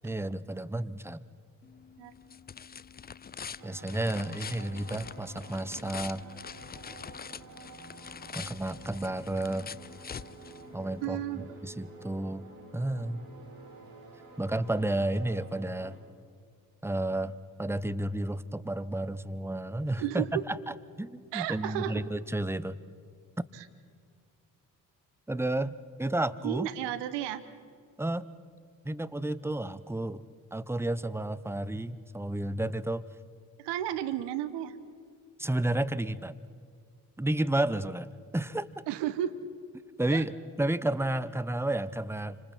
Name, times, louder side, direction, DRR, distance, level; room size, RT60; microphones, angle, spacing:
voice 1, 0.0-1.2 3.6-6.2 8.3-9.8 10.7-12.5 12.7-13.2 14.4-16.0 16.8-20.6 21.0-22.8 25.3-26.7 28.0-28.3 28.8-30.2 30.5-33.1 35.4-36.4 37.2-38.8 40.0-42.4, right 1 dB, 5° right, 16 dB, 1.0 m, -31 dB
sound 1, 1.6-11.1, left 6 dB, 25° left, 0.5 m, -45 dB
sound 2, 3.6-16.0, right 3 dB, 55° right, 4.8 m, -50 dB
voice 2, 11.0-11.5 20.0-20.4 21.3-21.9 23.6-23.7 26.4-27.4 33.6-34.8 38.9-39.3 40.1-40.2, right 12 dB, 75° right, 12 dB, 1.1 m, -33 dB
29.0 x 26.0 x 4.5 m, 2.1 s
hypercardioid pair, 40°, 42 cm